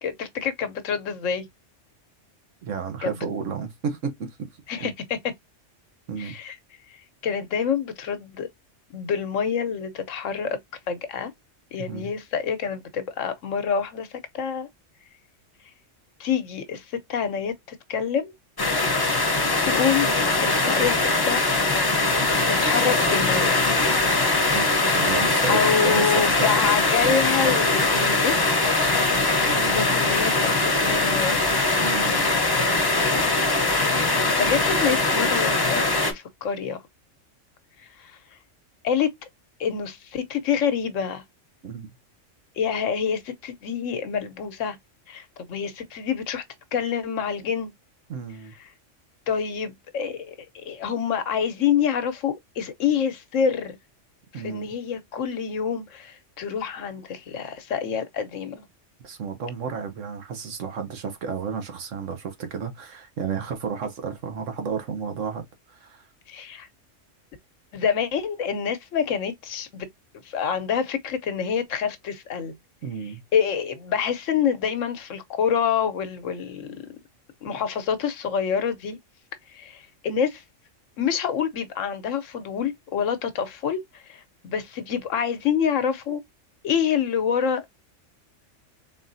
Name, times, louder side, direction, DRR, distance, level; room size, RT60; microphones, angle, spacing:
voice 1, 0.0-1.5 3.0-3.1 4.7-5.2 6.2-6.6 7.2-8.5 8.9-10.6 10.9-11.3 11.7-14.1 14.3-14.7 16.2-18.3 19.6-20.1 20.4-21.4 22.5-23.6 25.5-28.6 29.7-30.5 30.8-31.5 33.8-36.8 38.0-38.1 38.8-39.1 39.6-41.2 42.6-44.8 45.1-46.4 46.7-47.7 49.3-53.8 54.3-58.7 66.3-66.7 67.7-69.9 70.2-72.5 73.3-76.8 77.4-79.0 79.5-80.4 81.0-86.2 86.6-87.6, left 7 dB, 85° left, 1.2 m, -27 dB
voice 2, 2.6-4.9 6.1-6.4 11.8-12.1 24.5-24.6 24.9-26.5 29.5-29.9 31.8-32.2 41.6-41.9 48.1-48.5 54.3-54.7 59.0-66.0 72.8-73.2, right 6 dB, 80° right, 1.4 m, -32 dB
sound 1, 18.6-36.1, left 2 dB, 20° left, 0.8 m, -21 dB
3.9 x 3.7 x 2.6 m
omnidirectional pair, 1.3 m